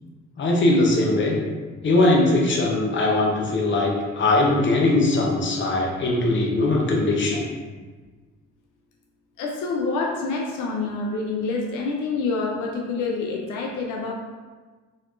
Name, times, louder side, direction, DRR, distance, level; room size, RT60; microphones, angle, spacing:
voice 1, 0.4-1.4 1.8-7.5, left 2 dB, 40° left, -2 dB, 0.9 m, -20 dB
voice 2, 9.4-14.1, left 3 dB, 90° left, 0 dB, 0.6 m, -27 dB
4.2 x 2.8 x 2.5 m, 1.3 s
cardioid pair, 90°, 30 cm